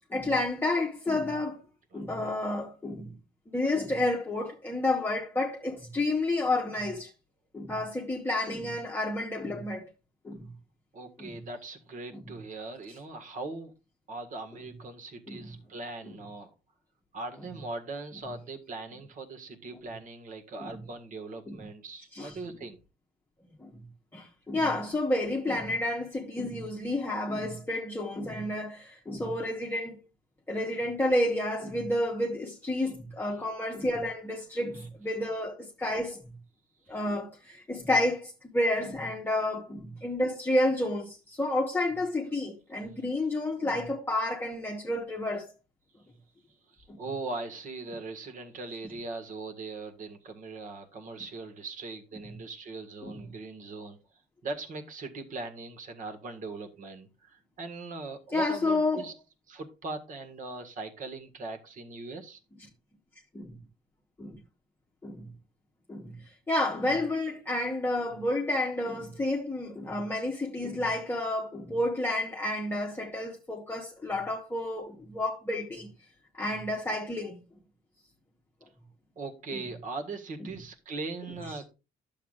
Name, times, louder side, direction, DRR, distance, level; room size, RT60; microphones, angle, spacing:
voice 1, 0.1-1.6 1.9-3.1 3.5-7.1 7.5-9.8 10.2-10.5 11.2-11.3 12.1-12.2 15.3-15.5 20.6-20.7 21.5-21.6 22.1-22.3 23.6-23.7 24.1-30.0 30.5-36.3 36.9-45.4 53.0-53.2 58.3-59.1 63.3-63.6 64.2-64.4 65.0-65.3 65.9-66.2 66.5-75.9 76.4-77.4, left 1 dB, 10° left, 1.1 m, -30 dB
voice 2, 10.9-13.7 14.1-16.5 17.1-22.8 32.8-32.9 33.3-33.4 34.7-34.9 46.7-54.0 54.4-59.1 59.5-62.4 79.1-81.7, right 3 dB, 50° right, 1.7 m, -40 dB
11.5 x 7.1 x 2.4 m
cardioid pair, 110°, 17 cm